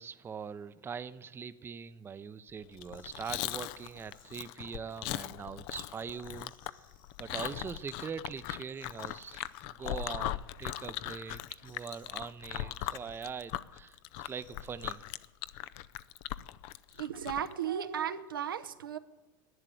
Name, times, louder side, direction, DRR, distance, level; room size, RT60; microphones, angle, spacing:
voice 1, 0.0-6.8 7.2-14.0 14.2-15.1, right 6 dB, 20° right, 14 dB, 0.6 m, -42 dB
Chewing mastication, 2.7-17.5, left 15 dB, 55° left, 0.6 m, -39 dB
sound 1, 2.8-4.3 5.8-7.6 8.0-8.1 8.3-8.4 8.7-9.7 11.3-12.1 12.4-13.4 14.2-15.2, left 6 dB, 80° left, 5.2 m, -63 dB
voice 2, 17.0-19.0, right 9 dB, 90° right, 9 dB, 0.9 m, -35 dB
11.5 x 9.8 x 9.2 m, 1.2 s
hypercardioid pair, 100°, 11 cm